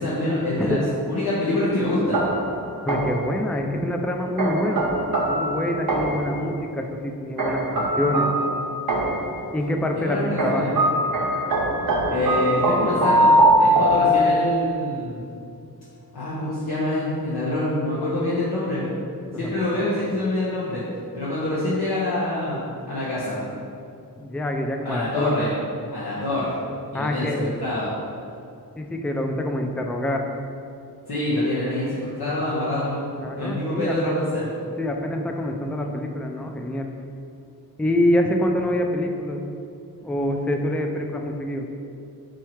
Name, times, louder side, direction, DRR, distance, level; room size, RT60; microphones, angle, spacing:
voice 1, 0.0-2.2 10.0-10.7 12.0-15.2 16.1-18.9 19.3-20.8 21.1-23.4 24.8-25.5 25.9-26.6 26.9-27.9 31.1-34.5, left 1 dB, 75° left, -9 dB, 1.2 m, -26 dB
sound 1, 2.1-3.3 4.4-6.4 7.4-9.4 10.4-14.7, right 1 dB, 60° right, 0.8 m, -21 dB
voice 2, 2.8-4.9 5.2-8.3 9.5-10.6 11.1-11.2 19.3-19.8 24.2-25.5 26.9-27.5 28.8-30.3 33.2-34.3 34.8-36.9 37.8-39.4 40.0-41.7, left 1 dB, 5° left, 3 dB, 0.3 m, -26 dB
4.6 x 4.5 x 4.5 m, 2.5 s
wide cardioid pair, 110°, 38 cm